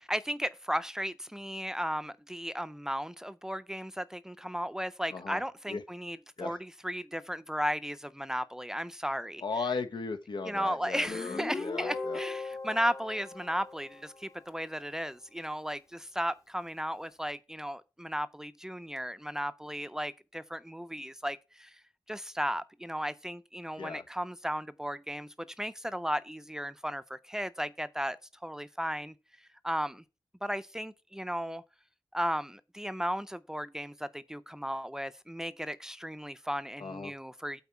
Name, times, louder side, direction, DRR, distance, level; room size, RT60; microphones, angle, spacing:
voice 1, 0.0-9.4 10.5-21.8 22.1-28.2 28.4-29.1 29.6-30.0 30.4-31.6 32.1-37.6, equal, 5° right, 0.5 m, -35 dB
voice 2, 5.1-5.4 5.7-5.8 6.4-6.6 9.4-12.2 23.8-24.0 36.8-37.1, left 4 dB, 75° left, 1.3 m, -37 dB
Guitar, 11.1-14.5, left 3 dB, 45° left, 2.4 m, -39 dB
8.3 x 4.5 x 7.0 m
wide cardioid pair, 110°, 8 cm